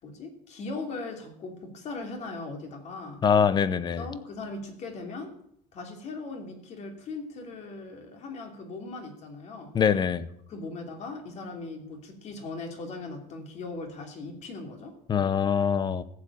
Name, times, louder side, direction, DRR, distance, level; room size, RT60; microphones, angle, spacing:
voice 1, 0.0-3.2 3.9-5.4 5.7-9.7 10.5-14.9, left 3 dB, 40° left, 2.8 m, -39 dB
voice 2, 3.2-4.0 9.7-10.3 15.1-16.0, left 7 dB, 25° left, 0.8 m, -23 dB
14.5 x 7.6 x 8.5 m
cardioid pair, 150°, 18 cm